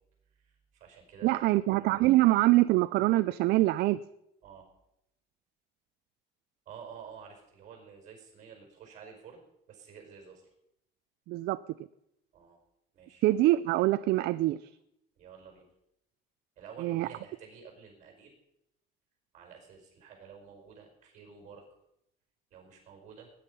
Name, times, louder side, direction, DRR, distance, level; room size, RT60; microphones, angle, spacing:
voice 1, 0.3-1.6 2.0-2.1 4.4-4.7 6.7-10.4 12.3-12.6 12.9-13.2 15.2-15.7 16.6-18.4 19.3-21.7 22.5-23.3, right 6 dB, 40° right, 2 dB, 5.3 m, -50 dB
voice 2, 1.2-4.0 11.3-11.6 13.2-14.7 16.8-17.1, right 17 dB, 60° right, 13 dB, 0.4 m, -24 dB
19.0 x 10.0 x 5.5 m, 0.81 s
cardioid pair, 175°, 19 cm